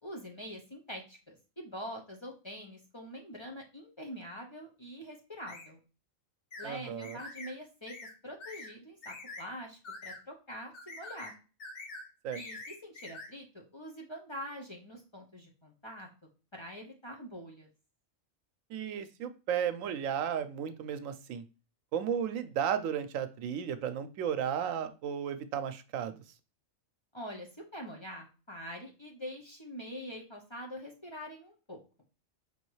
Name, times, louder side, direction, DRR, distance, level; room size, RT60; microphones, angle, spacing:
voice 1, 0.0-5.8 6.6-7.9 8.2-11.3 12.3-16.1 16.5-17.7 27.1-31.8, equal, 25° left, 0 dB, 0.8 m, -44 dB
sound 1, 5.5-5.7 6.5-6.7 7.0-7.5 7.9-8.1 8.4-8.7 9.0-9.4 9.8-10.2 10.7-11.3 11.6-12.0 12.3-13.3, left 2 dB, 50° left, 1.4 m, -45 dB
voice 2, 6.6-7.2 12.2-12.4 18.7-21.4 21.9-26.2, right 8 dB, 85° right, 11 dB, 1.0 m, -34 dB
5.6 x 3.0 x 3.1 m, 0.33 s
omnidirectional pair, 1.3 m